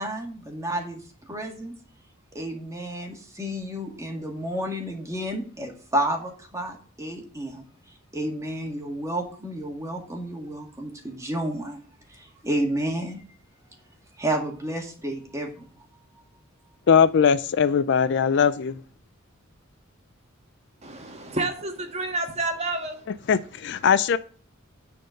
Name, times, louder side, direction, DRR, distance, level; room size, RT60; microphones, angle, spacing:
voice 1, 0.0-1.7 2.3-7.6 8.1-11.8 12.1-13.2 14.2-15.7, right 1 dB, 15° right, 2.0 m, -31 dB
voice 2, 16.9-18.7 23.3-24.2, left 7 dB, 60° left, 0.4 m, -20 dB
voice 3, 20.8-23.0, right 2 dB, 30° right, 1.6 m, -29 dB
9.6 x 4.4 x 6.4 m
head